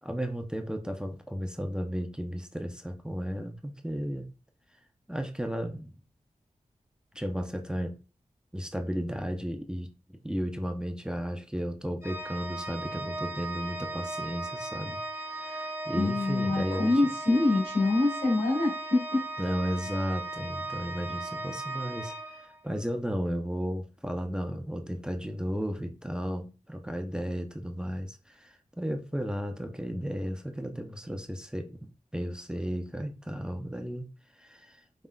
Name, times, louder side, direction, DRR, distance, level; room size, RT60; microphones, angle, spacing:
voice 1, 0.0-4.3 5.1-5.9 7.1-8.0 8.5-16.9 19.4-34.1 34.3-34.8, equal, 5° right, 0.8 m, -34 dB
Organ, 12.0-22.9, right 2 dB, 20° right, 1.4 m, -37 dB
voice 2, 16.0-19.2, left 2 dB, 90° left, 2.2 m, -25 dB
5.3 x 3.5 x 2.4 m
cardioid pair, 40°, 14 cm